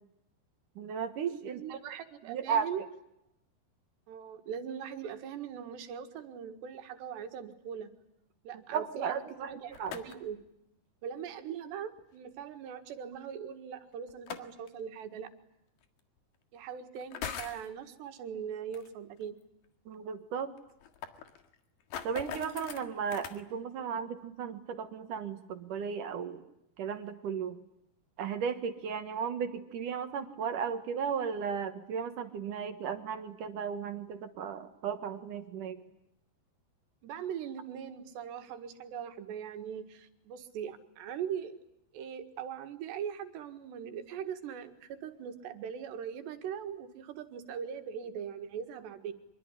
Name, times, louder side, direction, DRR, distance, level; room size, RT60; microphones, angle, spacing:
voice 1, 0.8-1.8 2.3-2.7 8.7-9.9 19.9-20.5 22.0-26.4 26.8-27.6 28.2-35.8, right 7 dB, 60° right, 9 dB, 2.6 m, -35 dB
voice 2, 1.5-2.8 4.1-7.9 8.5-10.4 11.0-15.3 16.5-19.3 37.0-41.5 41.9-49.1, right 8 dB, 85° right, 7 dB, 4.0 m, -41 dB
sound 1, 9.5-10.4 12.0-12.1 14.1-14.7 15.8-15.9 17.0-17.7 18.7-18.9 19.2-19.3 19.6-19.7 19.9-20.0 20.6-23.4, left 8 dB, 60° left, 3.2 m, -42 dB
25.0 x 23.5 x 9.9 m, 0.82 s
omnidirectional pair, 4.8 m